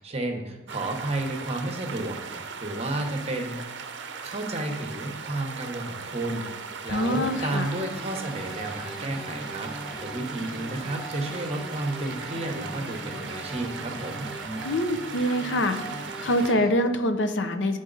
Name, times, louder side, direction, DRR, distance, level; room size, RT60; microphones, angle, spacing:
voice 1, 0.0-3.8 4.2-6.5 6.8-14.3, right 2 dB, 30° right, 3 dB, 0.8 m, -32 dB
sound 1, 0.7-16.5, right 5 dB, 65° right, 0.6 m, -38 dB
voice 2, 6.9-7.7 14.6-15.8 16.2-17.8, left 1 dB, 70° left, 7 dB, 0.6 m, -25 dB
sound 2, 6.9-16.7, right 1 dB, ahead, 1.0 m, -40 dB
9.9 x 3.9 x 3.9 m, 1.2 s
head